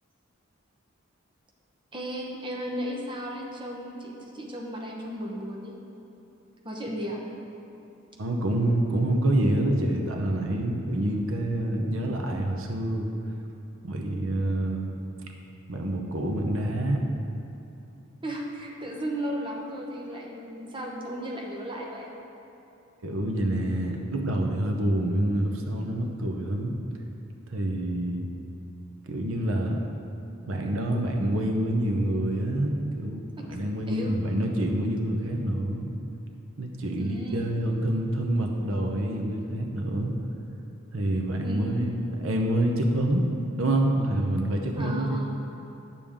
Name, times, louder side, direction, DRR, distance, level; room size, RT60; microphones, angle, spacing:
voice 1, 1.9-5.8 6.6-7.2 18.2-22.1 33.4-33.5 33.9-34.2 37.0-37.5 41.4-41.9 44.7-45.3, equal, 25° right, -2 dB, 0.9 m, -35 dB
voice 2, 8.2-13.1 13.8-14.9 15.7-17.0 23.0-26.7 27.5-28.3 29.1-29.8 30.5-33.2 33.5-35.9 36.6-40.1 40.9-41.9 42.2-43.3 43.6-45.3, right 1 dB, 85° right, 2 dB, 0.8 m, -27 dB
10.0 x 7.0 x 3.6 m, 2.8 s
head